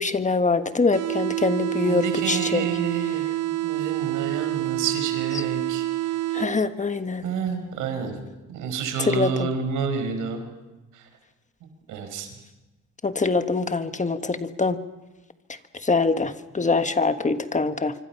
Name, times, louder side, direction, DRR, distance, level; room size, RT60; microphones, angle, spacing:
voice 1, 0.0-2.7 5.3-5.4 6.3-7.2 9.0-9.5 13.0-14.8 15.8-17.9, left 3 dB, 25° left, 9 dB, 1.4 m, -24 dB
sound 1, 0.9-6.9, right 16 dB, 55° right, 0.9 m, -27 dB
voice 2, 1.8-3.2 3.6-5.9 7.2-8.2 8.5-10.4 10.9-11.0 11.9-12.3, right 6 dB, 90° right, 6 dB, 5.1 m, -29 dB
26.0 x 24.5 x 5.9 m, 1.1 s
cardioid pair, 90°, 30 cm